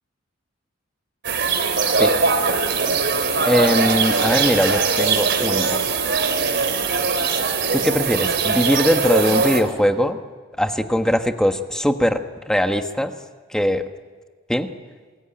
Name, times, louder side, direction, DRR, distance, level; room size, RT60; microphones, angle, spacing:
sound 1, 1.2-9.6, right 4 dB, 60° right, 3.5 m, -21 dB
voice 1, 3.4-5.8 7.7-10.2 10.6-13.1 13.5-13.9 14.5-14.7, equal, 5° left, 6 dB, 1.4 m, -21 dB
28.0 x 21.5 x 9.0 m, 1.4 s
head